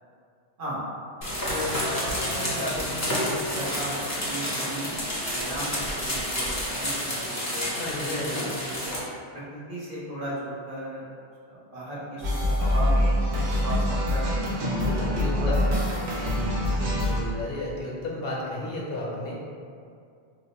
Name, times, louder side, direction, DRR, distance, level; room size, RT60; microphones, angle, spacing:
sound 1, 1.2-9.0, equal, 20° left, 0.6 m, -29 dB
voice 1, 1.5-7.7 8.2-9.0 9.3-11.1 11.5-14.5 14.8-15.6 16.6-16.7, right 1 dB, 55° right, -8 dB, 0.9 m, -36 dB
voice 2, 7.8-8.5 14.6-15.7 16.7-19.4, left 1 dB, 65° left, -4 dB, 0.8 m, -33 dB
sound 2, 12.2-17.2, left 1 dB, 85° right, 1.0 m, -25 dB
2.9 x 2.0 x 4.0 m, 2.4 s
omnidirectional pair, 1.1 m